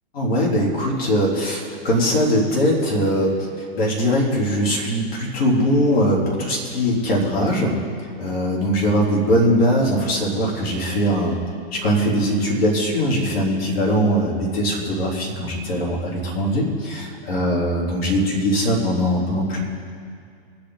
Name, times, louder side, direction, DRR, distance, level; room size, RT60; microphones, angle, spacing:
voice 1, 0.1-7.7 8.2-11.4 11.7-19.6, equal, 70° left, -3 dB, 4.0 m, -21 dB
23.0 x 8.7 x 4.1 m, 2.3 s
hypercardioid pair, 125°, 31 cm